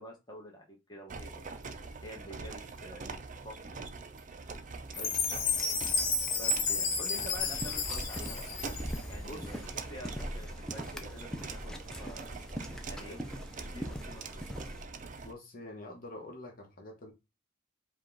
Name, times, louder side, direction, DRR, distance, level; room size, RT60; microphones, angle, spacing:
voice 1, 0.0-1.5 2.0-3.1 3.4-3.8 6.4-8.5 9.1-12.3 12.8-13.2 13.6-14.4, equal, 20° left, 1.2 m, -48 dB
sound 1, 1.1-15.3, right 4 dB, 40° right, 0.5 m, -44 dB
Chime, 4.9-9.1, left 4 dB, 80° left, 1.1 m, -31 dB
sound 2, 7.4-14.8, equal, 5° left, 0.6 m, -41 dB
voice 2, 9.2-9.7 13.1-13.2 15.2-17.1, left 1 dB, 45° left, 1.2 m, -46 dB
5.1 x 2.4 x 3.9 m
head